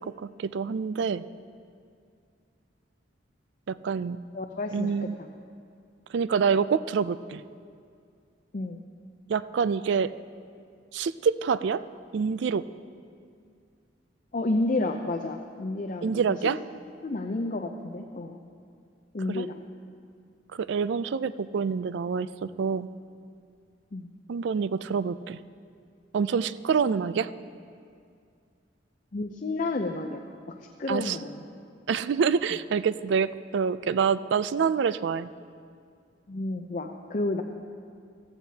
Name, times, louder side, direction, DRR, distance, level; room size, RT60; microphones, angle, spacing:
voice 1, 0.2-1.3 3.7-4.2 4.7-5.1 6.1-7.4 9.3-10.1 10.9-11.8 12.1-12.6 16.0-16.6 19.3-19.4 20.5-22.9 24.3-25.4 26.1-27.3 30.9-31.2 31.9-35.3, right 6 dB, 65° right, 15 dB, 0.3 m, -26 dB
voice 2, 4.3-5.3 8.5-8.8 14.3-16.5 17.0-18.4 19.1-19.5 23.9-24.1 29.1-30.2 30.8-31.4 36.3-37.4, left 2 dB, 45° left, 3 dB, 0.5 m, -31 dB
14.5 x 14.5 x 2.8 m, 2.3 s
head